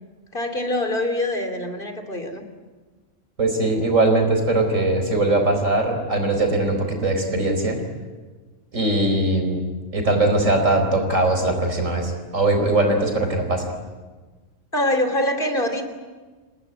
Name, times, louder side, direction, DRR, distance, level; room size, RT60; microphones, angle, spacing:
voice 1, 0.3-2.4 14.7-15.8, left 1 dB, 45° left, 7 dB, 3.0 m, -24 dB
voice 2, 3.4-7.8 8.7-13.7, right 2 dB, 85° right, 5 dB, 4.7 m, -21 dB
28.5 x 18.5 x 9.5 m, 1.3 s
omnidirectional pair, 1.3 m